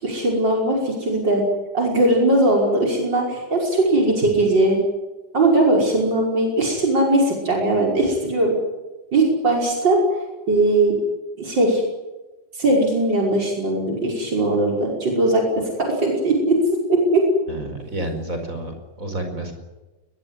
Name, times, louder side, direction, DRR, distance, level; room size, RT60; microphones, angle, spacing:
voice 1, 0.0-1.5 1.7-4.8 5.3-8.6 9.1-10.0 10.5-11.0 11.4-11.8 12.5-17.3, right 2 dB, 90° right, 0 dB, 6.3 m, -19 dB
voice 2, 17.5-19.5, right 1 dB, 45° right, 5 dB, 5.3 m, -30 dB
22.0 x 22.0 x 9.9 m, 1.1 s
omnidirectional pair, 1.9 m